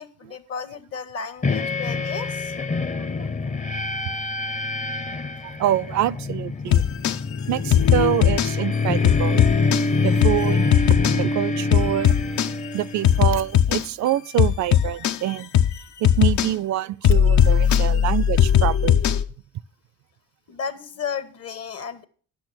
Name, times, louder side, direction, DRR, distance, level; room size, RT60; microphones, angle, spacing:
voice 1, 0.0-2.5 17.1-17.8 20.5-22.0, left 6 dB, 55° left, 1.1 m, -34 dB
sound 1, 1.4-13.5, left 3 dB, 25° left, 0.6 m, -25 dB
voice 2, 5.4-6.8 7.5-9.4 10.0-10.8 11.2-12.2 12.7-15.5 16.0-19.0, right 13 dB, 70° right, 0.4 m, -26 dB
sound 2, 6.7-7.2 7.7-8.5 9.0-9.8 10.2-10.4 10.7-11.2 11.7-12.5 13.0-13.8 14.4-15.2 15.5-15.8 16.0-16.5 17.0-19.2, left 9 dB, 70° left, 0.6 m, -18 dB
10.5 x 6.5 x 6.1 m
cardioid pair, 90°, 30 cm